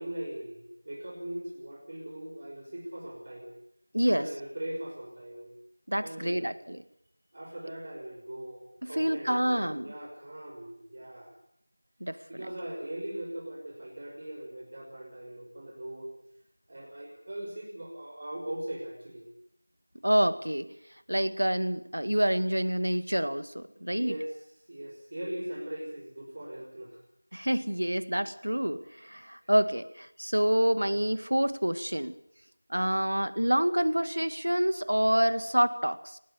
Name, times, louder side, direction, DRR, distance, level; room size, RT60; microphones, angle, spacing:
voice 1, 0.0-3.5 4.0-5.5 6.0-6.5 7.3-11.3 12.3-16.1 16.7-19.2 23.9-24.4 24.7-27.0 29.4-29.5, right 1 dB, 40° right, -1 dB, 5.8 m, -40 dB
voice 2, 3.9-4.3 5.9-6.8 8.8-9.9 12.0-12.2 20.0-20.7 21.1-24.1 27.3-32.1 32.7-36.2, equal, 90° right, 12 dB, 2.0 m, -27 dB
25.0 x 19.0 x 6.8 m, 0.72 s
figure-of-eight pair, 175°, 0 cm